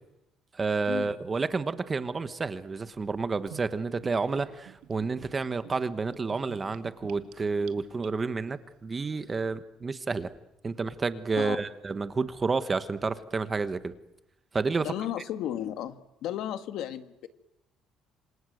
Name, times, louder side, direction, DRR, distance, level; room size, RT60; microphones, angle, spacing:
voice 1, 0.5-10.3 10.6-13.9 14.5-14.9, right 4 dB, 20° right, 12 dB, 1.2 m, -30 dB
Gurgling / Bathtub (filling or washing), 3.5-8.5, right 14 dB, 85° right, 2.0 m, -50 dB
voice 2, 14.8-17.3, left 11 dB, 65° left, 10 dB, 1.8 m, -34 dB
27.5 x 26.5 x 8.0 m, 0.89 s
cardioid pair, 170°, 0 cm